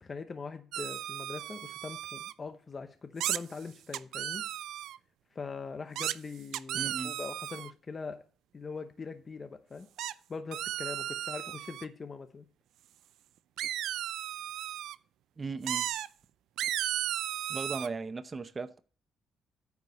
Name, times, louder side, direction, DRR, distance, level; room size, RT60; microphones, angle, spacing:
voice 1, 0.0-4.4 5.3-8.2 8.5-9.9 10.3-12.5, left 4 dB, 35° left, 0.8 m, -42 dB
sound 1, 0.7-2.3 3.2-3.4 3.9-5.0 5.9-6.1 6.5-7.7 10.0-10.1 10.5-11.8 13.6-14.9 15.7-16.1 16.6-17.9, right 12 dB, 85° right, 0.4 m, -35 dB
voice 2, 6.7-7.2 15.4-15.9 17.5-18.8, right 4 dB, 30° right, 0.7 m, -37 dB
9.5 x 4.8 x 6.6 m
cardioid pair, 90°, 0 cm